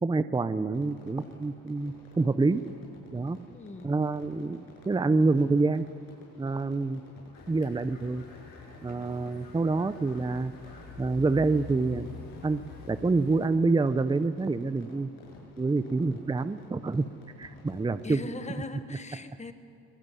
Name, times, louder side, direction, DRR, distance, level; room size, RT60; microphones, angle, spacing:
voice 1, 0.0-2.6 3.1-3.4 3.8-5.8 6.4-7.0 7.5-8.2 8.8-10.5 11.0-12.1 12.4-15.1 15.6-17.0 17.4-18.2, right 3 dB, 15° right, 12 dB, 0.7 m, -27 dB
Fireworks, 0.7-18.6, left 3 dB, 85° left, 6.7 m, -54 dB
voice 2, 3.5-3.9 18.0-19.5, left 3 dB, 20° left, 9 dB, 1.5 m, -40 dB
sound 1, 7.3-13.5, left 5 dB, 60° left, 6.0 m, -47 dB
22.5 x 19.0 x 9.3 m, 2.6 s
cardioid pair, 100°, 35 cm